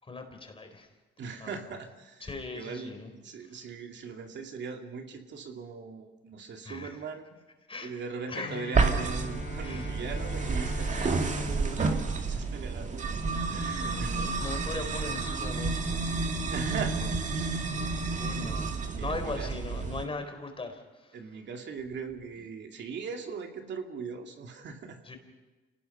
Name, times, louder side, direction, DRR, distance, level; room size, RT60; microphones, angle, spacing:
voice 1, 0.0-0.9 1.4-1.6 2.2-3.1 3.4-3.6 6.6-7.0 7.7-7.9 8.3-8.6 9.6-10.0 13.6-16.0 18.1-21.2 25.0-25.2, left 3 dB, 25° left, 6 dB, 4.1 m, -39 dB
voice 2, 1.2-2.9 3.2-7.3 7.8-13.0 13.5-14.3 16.5-17.2 18.0-18.4 18.9-19.5 21.1-25.0, right 5 dB, 65° right, 3 dB, 2.4 m, -40 dB
Bowed string instrument, 8.3-13.2, left 4 dB, 65° left, 6.8 m, -42 dB
sound 1, 8.7-20.0, right 4 dB, 40° right, 2.2 m, -30 dB
27.0 x 18.5 x 5.5 m, 1.2 s
cardioid pair, 90°, 20 cm